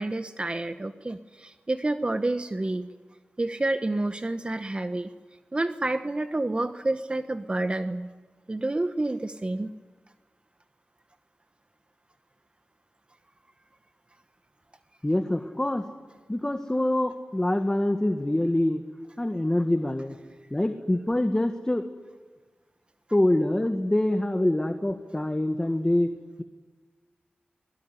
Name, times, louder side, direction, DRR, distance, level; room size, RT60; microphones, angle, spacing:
voice 1, 0.0-2.9 3.4-5.1 5.5-8.1 8.5-9.7, right 2 dB, 30° right, 9 dB, 1.1 m, -29 dB
voice 2, 15.0-15.9 16.3-18.8 19.2-20.2 20.5-21.9 23.1-26.1, left 1 dB, 20° left, 6 dB, 1.7 m, -25 dB
24.0 x 21.0 x 9.8 m, 1.3 s
wide cardioid pair, 60°, 4 cm